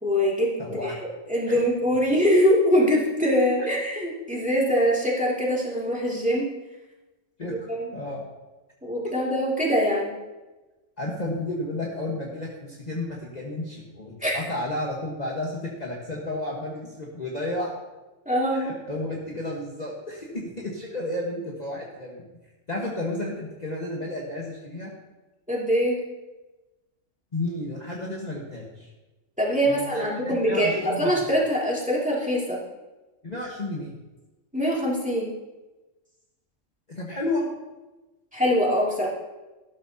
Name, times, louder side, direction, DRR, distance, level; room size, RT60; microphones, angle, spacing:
voice 1, 0.0-6.5 7.7-7.9 8.8-10.1 14.2-14.4 18.3-18.7 25.5-26.0 29.4-32.6 34.5-35.3 38.3-39.1, equal, 5° right, -5 dB, 2.6 m, -23 dB
voice 2, 0.6-1.0 1.5-1.6 3.6-3.7 7.4-8.3 9.0-9.1 11.0-17.7 18.5-22.3 22.7-24.9 27.3-28.9 29.7-31.2 33.2-33.9 36.9-37.4, left 1 dB, 30° left, -4 dB, 1.5 m, -32 dB
13.5 x 12.5 x 2.9 m, 1.1 s
omnidirectional pair, 1.4 m